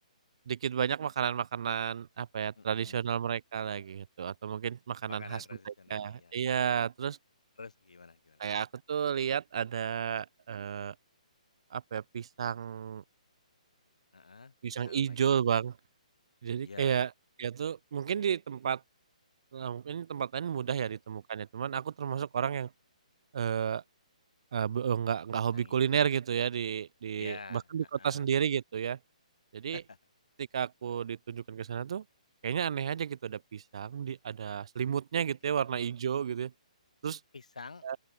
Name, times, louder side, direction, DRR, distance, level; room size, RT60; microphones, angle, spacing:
voice 1, 0.5-7.2 8.4-10.9 11.7-13.0 14.6-15.7 16.4-17.1 17.4-18.8 19.5-22.7 23.3-23.8 24.5-29.0 29.5-29.8 30.4-32.0 32.4-36.5 37.0-37.2 37.8-38.0, right 8 dB, 50° right, 0.4 m, -32 dB
voice 2, 2.6-3.0 5.1-6.4 7.6-8.5 14.1-15.2 16.6-17.0 20.8-21.0 25.5-25.8 27.1-28.3 29.7-30.0 35.6-35.7 37.3-37.9, left 4 dB, 65° left, 2.8 m, -48 dB
open air
figure-of-eight pair, 130°, 4 cm